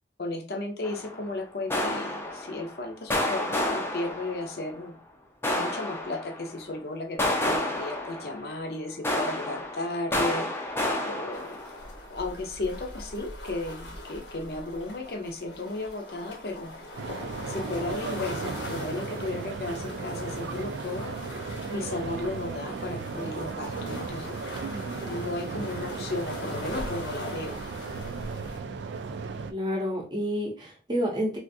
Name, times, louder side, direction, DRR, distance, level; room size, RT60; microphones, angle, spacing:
voice 1, 0.2-5.0 5.5-11.6 12.1-16.7 17.5-21.1 21.7-24.4 25.1-27.6, left 2 dB, 60° left, 4 dB, 0.6 m, -34 dB
sound 1, 0.8-1.3 1.7-2.8 3.1-4.7 5.4-6.6 7.2-8.7 9.0-11.9, left 1 dB, 15° left, 0.4 m, -30 dB
sound 2, 11.3-28.6, left 1 dB, 90° left, 1.0 m, -41 dB
sound 3, 17.0-29.5, right 5 dB, 85° right, 0.3 m, -36 dB
voice 2, 29.5-31.4, equal, 25° right, -1 dB, 0.6 m, -29 dB
3.4 x 2.5 x 2.6 m, 0.35 s
head